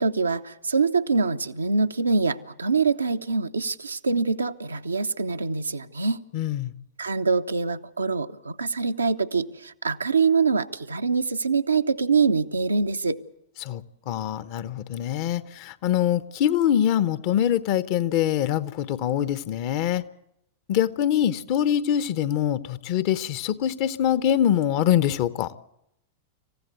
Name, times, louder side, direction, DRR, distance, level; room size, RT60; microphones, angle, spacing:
voice 1, 0.0-6.2 7.0-13.2, right 4 dB, 80° right, 0.8 m, -24 dB
voice 2, 6.3-6.7 13.6-20.0 20.7-25.5, left 10 dB, 45° left, 0.9 m, -24 dB
26.5 x 15.5 x 8.1 m
figure-of-eight pair, 90°, 0 cm